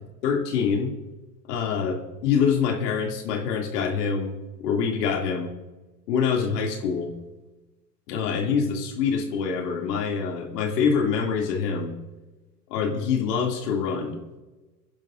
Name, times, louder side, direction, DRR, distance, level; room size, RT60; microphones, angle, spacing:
voice 1, 0.2-0.9 1.5-5.5 6.1-7.1 8.1-12.0 12.7-14.2, left 6 dB, 70° left, 1 dB, 2.8 m, -25 dB
27.5 x 10.5 x 2.6 m, 1.1 s
hypercardioid pair, 95°, 50 cm